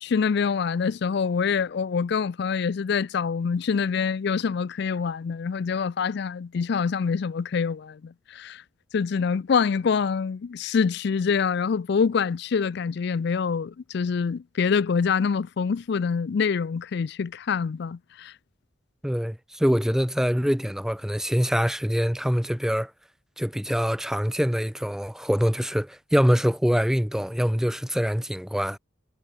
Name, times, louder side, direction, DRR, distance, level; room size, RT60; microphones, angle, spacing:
voice 1, 0.0-8.6 8.9-18.3, left 6 dB, 55° left, 0.4 m, -25 dB
voice 2, 19.0-22.9 23.4-28.8, equal, ahead, 0.9 m, -24 dB
head